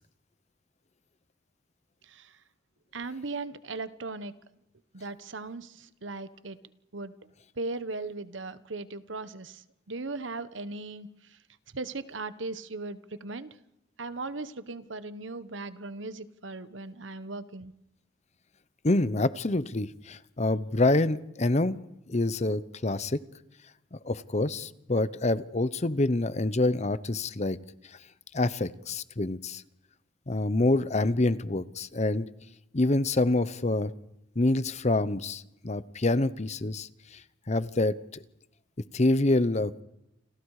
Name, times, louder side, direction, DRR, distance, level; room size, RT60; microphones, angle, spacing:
voice 1, 2.9-4.3 4.9-6.6 6.9-7.1 7.6-11.1 11.7-13.5 14.0-17.7, right 3 dB, 85° right, 13 dB, 1.2 m, -38 dB
voice 2, 18.8-21.8 22.1-23.2 23.9-27.6 28.3-29.6 30.3-32.3 32.7-33.9 34.4-37.2 37.5-38.2 38.9-39.8, left 2 dB, 35° left, 15 dB, 0.9 m, -26 dB
29.5 x 27.0 x 4.9 m, 0.86 s
head